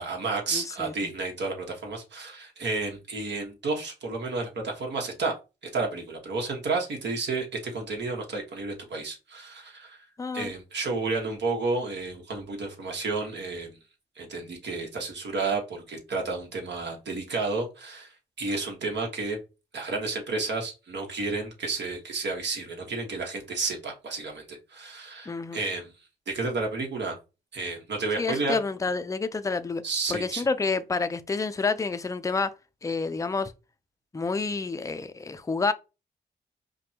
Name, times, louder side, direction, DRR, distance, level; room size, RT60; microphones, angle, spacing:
voice 1, 0.0-5.3 5.7-10.0 10.3-13.8 14.2-19.4 19.7-25.9 26.3-27.1 27.5-28.6 29.8-30.5, right 3 dB, 70° right, 1.3 m, -31 dB
voice 2, 0.5-0.9 10.2-10.5 25.3-25.6 28.2-29.8 30.1-32.5 32.8-33.5 34.1-35.7, left 4 dB, 15° left, 0.4 m, -29 dB
5.1 x 2.2 x 2.8 m
cardioid pair, 75°, 18 cm